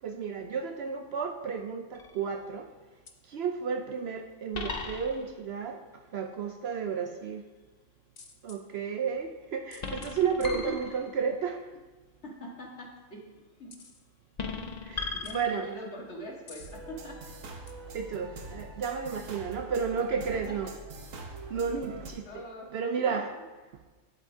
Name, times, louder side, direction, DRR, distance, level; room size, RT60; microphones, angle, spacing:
voice 1, 0.0-2.7 3.2-7.4 8.4-11.7 14.8-15.7 17.9-20.7 21.5-22.5 22.7-23.3, right 6 dB, 60° right, 5 dB, 0.7 m, -32 dB
sound 1, 1.9-2.4 3.1-3.2 4.5-5.5 8.2-8.6 9.7-11.3 13.7-14.0 14.4-15.9 16.5-16.8 17.7-17.8, left 4 dB, 40° left, 0.7 m, -38 dB
voice 2, 12.2-13.2 13.6-13.8 15.1-17.2 22.3-22.7 23.1-23.4, right 1 dB, 60° left, -2 dB, 1.9 m, -42 dB
sound 2, 16.6-22.1, right 2 dB, 80° right, 1.4 m, -44 dB
12.0 x 7.6 x 2.7 m, 1.2 s
omnidirectional pair, 1.3 m